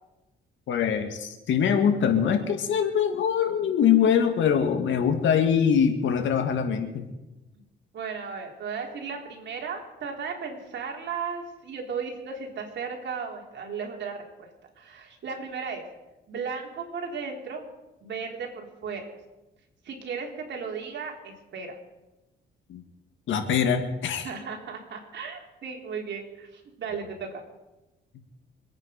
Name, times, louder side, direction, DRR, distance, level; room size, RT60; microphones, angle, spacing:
voice 1, 0.7-7.1 22.7-22.8 23.3-24.3, left 7 dB, 75° left, 6 dB, 2.1 m, -23 dB
voice 2, 7.9-14.5 14.8-15.9 16.3-17.6 18.0-19.1 19.8-21.8 24.2-27.4, right 5 dB, 65° right, 1 dB, 3.7 m, -35 dB
25.5 x 9.2 x 5.3 m, 1.0 s
cardioid pair, 90°, 20 cm